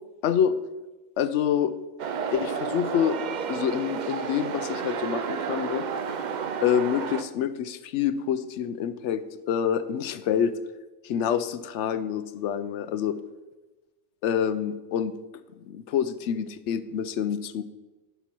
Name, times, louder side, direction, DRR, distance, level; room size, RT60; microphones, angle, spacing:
voice 1, 1.2-1.8 2.3-3.2 3.5-5.9 6.1-6.2 6.6-9.2 9.5-10.5 11.0-13.2 14.2-15.1 15.6-17.6, left 9 dB, 80° left, 12 dB, 0.9 m, -27 dB
sound 1, 2.0-7.2, right 6 dB, 55° right, 0.5 m, -31 dB
11.0 x 5.6 x 4.5 m, 1.1 s
omnidirectional pair, 1.2 m